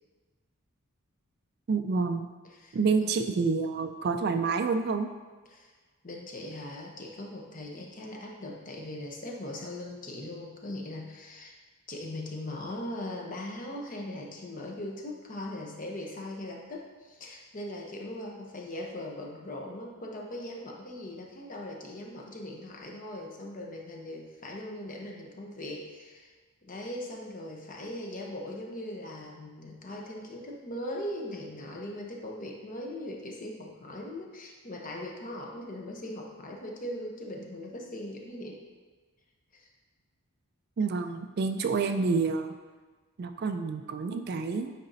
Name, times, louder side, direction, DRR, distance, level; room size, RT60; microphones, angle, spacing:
voice 1, 1.7-2.3 2.7-5.1 40.8-42.5 43.2-44.7, right 4 dB, 45° right, 7 dB, 0.3 m, -28 dB
voice 2, 2.6-3.2 5.5-5.7 6.0-11.5 11.9-26.3 26.6-38.6 39.5-39.7, left 1 dB, 35° left, 0 dB, 0.8 m, -40 dB
9.5 x 4.1 x 2.7 m, 1.4 s
head